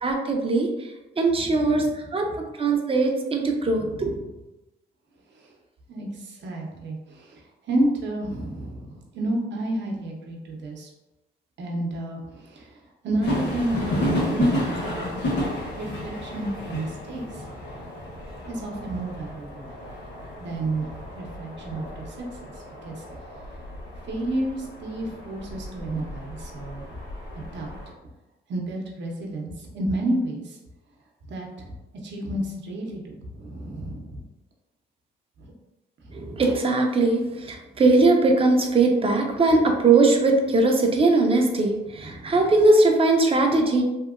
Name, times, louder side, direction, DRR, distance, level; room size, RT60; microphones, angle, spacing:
voice 1, 0.0-2.3 2.6-4.2 36.1-43.8, right 3 dB, 30° right, 3 dB, 0.5 m, -20 dB
voice 2, 1.4-1.9 3.7-4.1 5.4-5.5 5.9-10.9 11.6-12.8 13.0-15.1 15.7-17.4 18.5-19.7 20.4-22.5 22.8-23.0 24.1-27.0 27.5-27.7 28.5-30.6 31.3-31.7 32.0-34.3 35.4-35.5 36.0-36.4 42.0-42.5, right 1 dB, 65° right, 0 dB, 0.8 m, -31 dB
sound 1, 13.2-27.9, left 1 dB, 60° left, 1.1 m, -32 dB
2.8 x 2.7 x 2.4 m, 1.0 s
cardioid pair, 90°, 20 cm